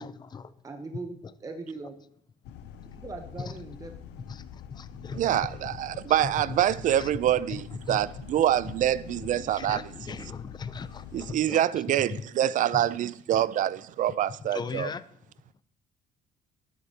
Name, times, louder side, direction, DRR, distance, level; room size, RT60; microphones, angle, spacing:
voice 1, 0.0-0.5 1.2-1.3 3.4-3.5 4.3-7.1 7.5-8.0 9.5-12.2 12.7-12.8 14.5-15.0, left 5 dB, 25° left, 0.4 m, -39 dB
voice 2, 0.6-1.9 3.0-3.9, right 3 dB, 20° right, 0.8 m, -40 dB
sound 1, 2.4-11.4, left 9 dB, 85° left, 0.6 m, -45 dB
voice 3, 5.2-9.8 11.1-14.9, right 11 dB, 50° right, 0.4 m, -26 dB
12.5 x 7.8 x 2.8 m
cardioid pair, 110°, 17 cm